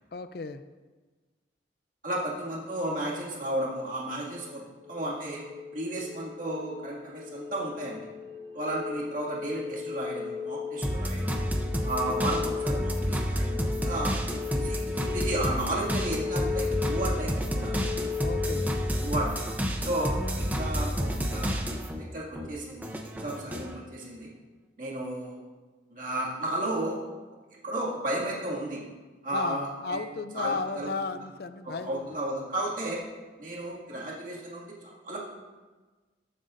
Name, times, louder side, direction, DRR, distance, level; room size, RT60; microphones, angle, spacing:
voice 1, 0.1-0.6 18.2-18.7 29.3-32.1, left 4 dB, 55° left, 10 dB, 0.4 m, -34 dB
voice 2, 2.0-4.6 4.9-5.4 5.7-8.1 8.5-11.4 11.8-14.1 14.5-17.8 19.0-19.4 19.8-21.5 22.0-24.3 24.8-25.4 25.9-27.0 27.6-28.8 29.2-30.0 30.3-31.2 31.6-33.0 33.4-34.7 35.0-35.2, right 1 dB, 45° right, -5 dB, 2.1 m, -33 dB
sound 1, 4.2-19.4, left 6 dB, 90° right, 1.8 m, -36 dB
sound 2, 10.8-22.0 22.3-23.7, equal, 10° right, 0.6 m, -30 dB
14.5 x 7.9 x 2.6 m, 1.3 s
head